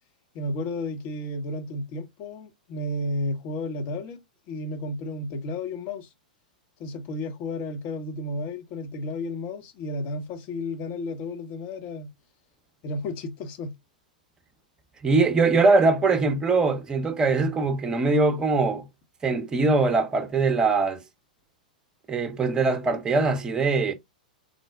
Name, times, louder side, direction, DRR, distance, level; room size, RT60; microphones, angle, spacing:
voice 1, 0.3-4.2 4.5-6.1 6.8-12.1 12.8-13.7, left 2 dB, 40° left, 0.8 m, -32 dB
voice 2, 15.0-18.8 19.2-21.0 22.1-23.9, right 3 dB, 15° right, 0.7 m, -22 dB
3.8 x 2.0 x 3.3 m
figure-of-eight pair, 100°, 5 cm